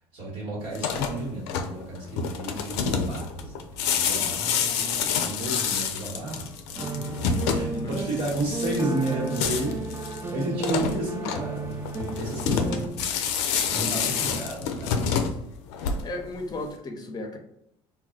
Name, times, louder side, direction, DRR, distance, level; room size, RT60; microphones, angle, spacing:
voice 1, 0.1-9.8 10.3-13.3 13.6-15.3, right 2 dB, 65° right, -5 dB, 1.2 m, -32 dB
sound 1, 0.7-16.3, left 6 dB, 80° left, 0.4 m, -28 dB
sound 2, 6.8-12.9, right 3 dB, 15° right, 0.4 m, -33 dB
voice 2, 7.7-8.0 10.3-10.5 12.4-12.8 14.0-14.2 16.0-17.4, left 2 dB, 30° left, 4 dB, 0.6 m, -36 dB
2.3 x 2.2 x 3.8 m, 0.75 s
supercardioid pair, 80°, 14 cm